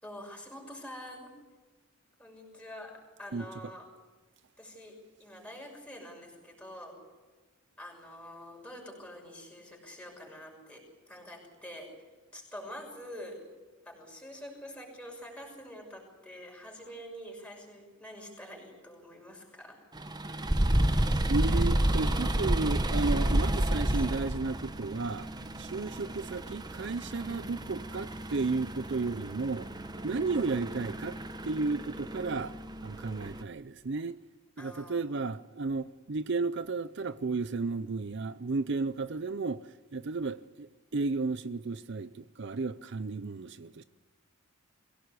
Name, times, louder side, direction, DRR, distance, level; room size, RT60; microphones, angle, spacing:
voice 1, 0.0-1.4 2.2-3.9 4.6-7.0 7.8-11.9 12.3-13.4 13.8-19.9 23.9-24.1 27.3-27.8 34.6-35.2 43.2-43.8, equal, 5° left, 6.3 m, -46 dB
sound 1, 19.9-33.4, right 1 dB, 20° right, 1.0 m, -31 dB
voice 2, 21.3-25.3 25.6-29.7 30.0-32.5 32.8-34.2 34.6-43.8, right 3 dB, 55° right, 0.6 m, -33 dB
23.5 x 17.0 x 8.3 m
head